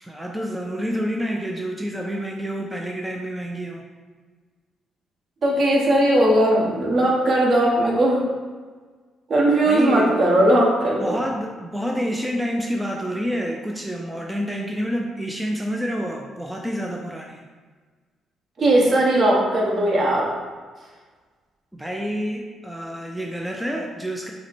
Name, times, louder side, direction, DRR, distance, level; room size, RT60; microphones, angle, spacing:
voice 1, 0.0-3.9 9.7-10.1 11.0-17.4 21.7-24.3, equal, 5° right, 0 dB, 0.4 m, -28 dB
voice 2, 5.4-8.2 9.3-11.2 18.6-20.3, right 1 dB, 50° right, -3 dB, 1.2 m, -18 dB
5.6 x 2.1 x 4.3 m, 1.4 s
cardioid pair, 90°, 0 cm